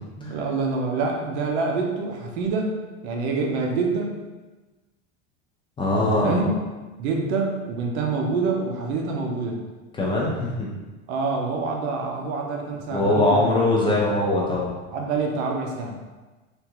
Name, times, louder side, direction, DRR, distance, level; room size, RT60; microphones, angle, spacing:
voice 1, 0.3-2.8 3.0-4.2 6.0-6.5 7.0-9.6 11.1-13.9 14.9-16.0, right 4 dB, 75° right, 1 dB, 0.7 m, -26 dB
voice 2, 5.8-6.5 9.9-10.7 12.9-14.8, left 2 dB, 15° left, -4 dB, 0.4 m, -22 dB
3.4 x 2.5 x 2.9 m, 1.2 s
supercardioid pair, 145°, 34 cm